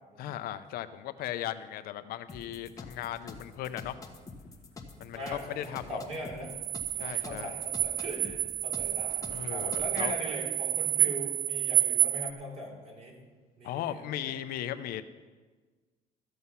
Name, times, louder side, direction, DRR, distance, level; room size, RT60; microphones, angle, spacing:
voice 1, 0.2-4.0 5.0-6.0 7.0-7.5 9.3-10.1 13.6-15.0, left 12 dB, 80° left, 11 dB, 0.6 m, -37 dB
sound 1, 2.3-10.2, left 3 dB, 20° left, 1.3 m, -47 dB
voice 2, 5.1-6.5 7.0-13.2 13.6-14.3, equal, 45° right, 0 dB, 3.3 m, -40 dB
sound 2, 6.4-12.3, right 14 dB, 70° right, 0.8 m, -30 dB
14.0 x 7.8 x 5.6 m, 1.4 s
cardioid pair, 120°, 15 cm